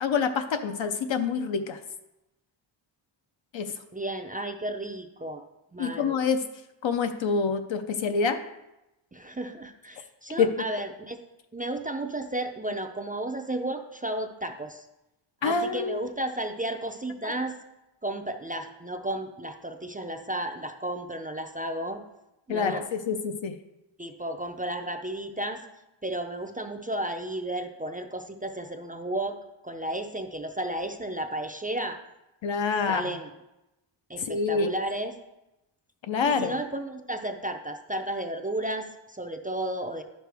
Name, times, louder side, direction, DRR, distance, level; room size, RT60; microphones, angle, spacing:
voice 1, 0.0-1.8 3.5-3.7 5.8-6.4 6.8-8.4 10.4-10.5 15.4-16.1 17.2-17.3 22.5-23.6 32.4-33.0 34.2-34.7 36.1-36.5, left 5 dB, 70° left, 7 dB, 0.7 m, -26 dB
voice 2, 3.9-5.5 5.7-6.2 9.1-11.2 11.5-14.9 15.4-17.6 18.0-22.0 22.5-22.8 24.0-25.6 26.0-29.4 29.6-32.0 32.9-33.3 34.1-35.1 36.2-40.0, right 1 dB, 20° right, 4 dB, 0.4 m, -33 dB
11.0 x 6.3 x 3.4 m, 0.94 s
wide cardioid pair, 155°, 48 cm